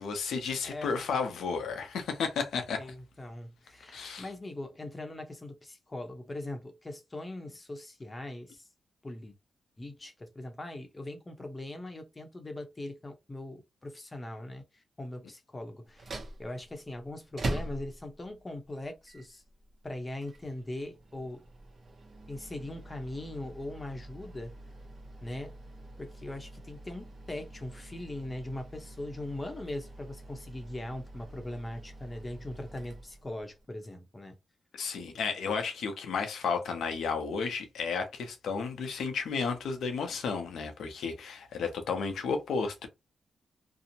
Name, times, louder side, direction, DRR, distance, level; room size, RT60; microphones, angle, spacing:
voice 1, 0.0-2.9 3.9-4.3 34.7-42.9, left 5 dB, 90° left, 0.6 m, -33 dB
voice 2, 2.8-8.7 9.0-9.4 9.8-19.4 19.8-21.4 22.3-24.5 25.2-25.5 26.0-34.4, left 1 dB, 25° left, 0.7 m, -40 dB
sound 1, 15.9-33.7, right 2 dB, 50° right, 0.6 m, -44 dB
2.6 x 2.0 x 2.7 m
cardioid pair, 85°, 0 cm